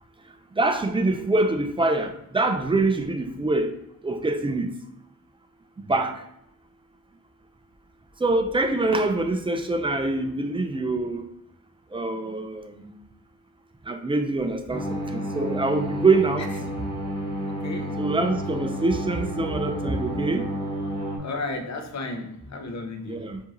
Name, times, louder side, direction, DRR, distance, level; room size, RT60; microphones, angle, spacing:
voice 1, 0.6-3.7 4.0-4.7 5.8-6.2 8.2-11.3 11.9-12.9 13.9-16.5 18.0-20.5 23.1-23.4, right 2 dB, 15° right, 0.3 m, -24 dB
sound 1, 14.7-21.2, equal, 15° left, 0.9 m, -30 dB
voice 2, 17.6-18.0 21.2-23.2, left 2 dB, 55° left, 0.6 m, -33 dB
4.7 x 2.6 x 2.9 m
wide cardioid pair, 120°, 33 cm